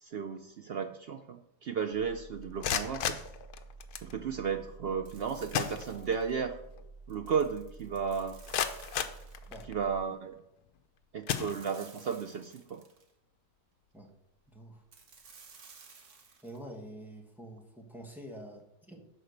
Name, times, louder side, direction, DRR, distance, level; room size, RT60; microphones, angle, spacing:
voice 1, 0.0-3.2 4.0-6.6 7.1-8.4 9.7-10.4 11.1-12.8, right 6 dB, 70° right, 7 dB, 0.5 m, -34 dB
sound 1, 1.9-10.0, right 3 dB, 65° left, 3.3 m, -51 dB
sound 2, 2.4-4.1 5.1-5.2 5.5-6.4 6.8-6.9 7.4-7.5 8.1-9.9 10.6-10.8 11.2-12.1, left 9 dB, 85° left, 1.2 m, -35 dB
sound 3, 5.0-6.4 7.1-9.6 11.4-13.1 14.9-16.6, right 5 dB, 55° right, 1.4 m, -56 dB
voice 2, 16.4-19.0, right 1 dB, ahead, 0 dB, 1.4 m, -46 dB
11.0 x 4.3 x 6.5 m, 0.86 s
omnidirectional pair, 1.6 m